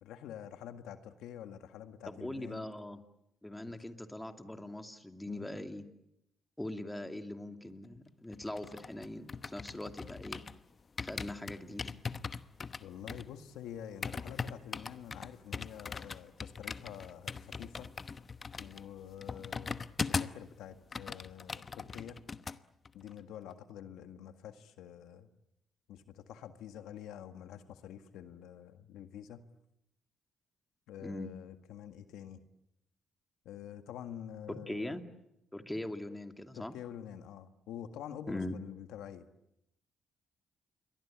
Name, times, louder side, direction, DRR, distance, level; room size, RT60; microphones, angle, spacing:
voice 1, 0.0-2.7 3.6-3.7 5.3-5.5 12.8-18.0 18.6-19.8 20.1-22.2 22.9-25.3 25.9-29.4 30.9-32.4 33.5-35.0 36.5-39.3, left 10 dB, 90° left, 8 dB, 1.8 m, -47 dB
voice 2, 2.1-3.0 3.4-5.8 6.6-10.4 11.0-11.9 31.0-31.3 34.5-35.0 35.5-36.7 38.3-38.6, left 1 dB, 10° left, 6 dB, 2.6 m, -41 dB
sound 1, 8.3-10.6 11.0-20.5 20.7-22.6 22.9-23.1, left 5 dB, 35° left, 1.0 m, -40 dB
28.5 x 23.0 x 8.8 m, 0.82 s
cardioid pair, 90°, 0 cm